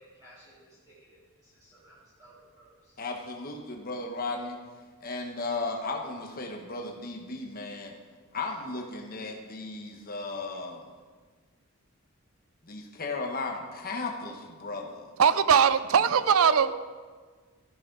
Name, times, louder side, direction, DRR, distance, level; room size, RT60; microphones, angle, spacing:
voice 1, 0.0-3.0, right 1 dB, 15° right, -10 dB, 3.6 m, -57 dB
voice 2, 3.0-4.6 5.0-7.9 8.3-10.8 12.6-15.1 16.2-16.7, left 3 dB, 40° left, 1 dB, 1.3 m, -35 dB
voice 3, 15.2-16.7, right 7 dB, 70° right, 15 dB, 0.5 m, -21 dB
13.5 x 11.0 x 4.0 m, 1.5 s
head